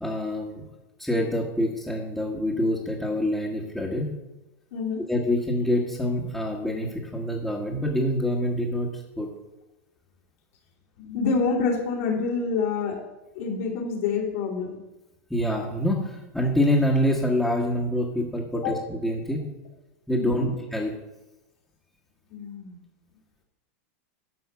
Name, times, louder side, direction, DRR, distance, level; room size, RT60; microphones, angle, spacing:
voice 1, 0.0-0.7 1.0-4.1 5.1-9.3 15.3-19.4 20.1-20.9, left 1 dB, ahead, -4 dB, 1.4 m, -26 dB
voice 2, 4.7-5.0 11.0-13.0 13.3-14.7 18.5-18.7 20.1-20.5 22.3-22.8, left 4 dB, 75° left, -5 dB, 3.1 m, -27 dB
10.5 x 5.5 x 7.1 m, 1.1 s
supercardioid pair, 145°, 7 cm